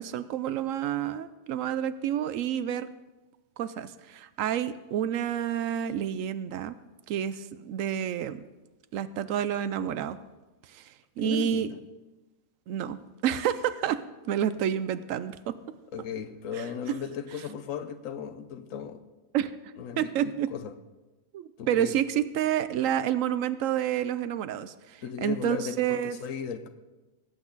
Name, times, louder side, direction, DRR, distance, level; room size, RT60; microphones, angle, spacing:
voice 1, 0.0-2.9 3.6-6.8 7.1-8.4 8.9-10.2 10.7-11.7 12.7-15.5 16.5-16.6 19.3-19.5 20.0-20.5 21.3-26.2, right 10 dB, 75° right, 1.0 m, -29 dB
voice 2, 11.2-11.8 15.9-19.0 19.8-20.7 21.6-22.0 25.0-26.7, left 7 dB, 75° left, 1.1 m, -36 dB
18.0 x 8.4 x 3.9 m
omnidirectional pair, 1.4 m